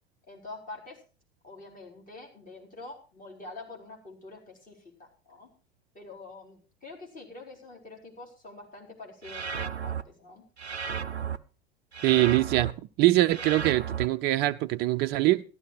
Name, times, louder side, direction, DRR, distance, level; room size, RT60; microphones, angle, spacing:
voice 1, 0.3-1.0 1.4-5.5 5.9-10.5, left 3 dB, 25° left, 0 dB, 4.3 m, -46 dB
sound 1, 9.2-10.0 10.6-11.4 11.9-12.7 13.3-14.1, right 7 dB, 90° right, 0.6 m, -33 dB
voice 2, 12.0-12.7 13.0-15.4, right 17 dB, 30° right, 9 dB, 0.5 m, -23 dB
13.5 x 11.5 x 4.6 m, 0.34 s
figure-of-eight pair, 85°, 32 cm